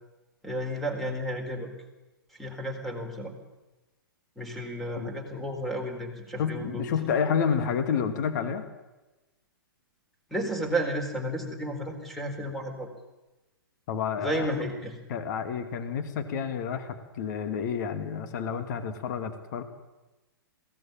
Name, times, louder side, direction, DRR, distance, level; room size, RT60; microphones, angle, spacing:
voice 1, 0.4-1.7 2.4-3.3 4.4-6.9 10.3-12.9 14.2-15.0, equal, ahead, 5 dB, 4.2 m, -32 dB
voice 2, 5.0-5.4 6.4-8.6 13.9-14.5 15.1-19.6, left 7 dB, 50° left, 8 dB, 2.3 m, -30 dB
22.0 x 17.5 x 9.1 m, 1.1 s
hypercardioid pair, 130°, 12 cm